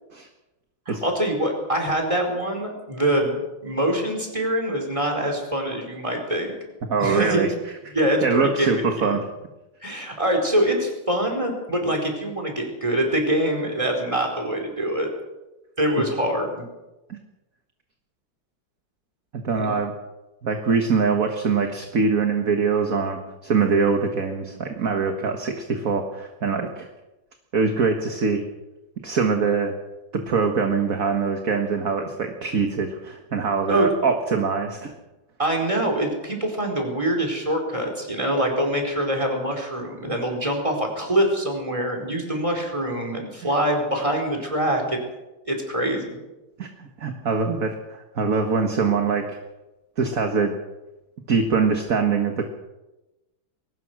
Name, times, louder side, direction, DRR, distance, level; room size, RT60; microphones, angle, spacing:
voice 1, 0.9-6.6 7.0-7.4 7.9-9.2 9.8-15.1 15.8-16.6 19.6-19.7 33.7-33.9 35.4-45.0 45.4-46.2, right 1 dB, 15° right, 2 dB, 4.6 m, -24 dB
voice 2, 6.9-7.5 7.9-8.0 8.2-9.2 17.1-17.2 19.3-19.9 20.4-26.9 27.5-28.4 29.0-29.7 30.1-34.9 46.6-49.4 50.0-50.5 51.3-52.5, right 5 dB, 45° right, 4 dB, 1.9 m, -23 dB
22.0 x 19.0 x 6.3 m, 1.0 s
omnidirectional pair, 2.2 m